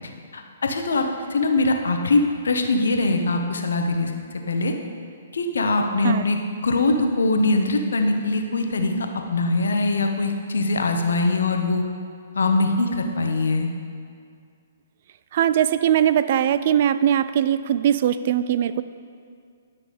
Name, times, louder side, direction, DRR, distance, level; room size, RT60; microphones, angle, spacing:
voice 1, 0.3-1.0 1.3-4.1 4.5-4.7 5.3-6.4 6.6-11.8 12.3-13.7, left 2 dB, 75° left, 4 dB, 1.0 m, -22 dB
voice 2, 15.3-18.8, right 10 dB, 50° right, 13 dB, 0.4 m, -20 dB
10.5 x 6.0 x 5.1 m, 2.3 s
figure-of-eight pair, 125°, 0 cm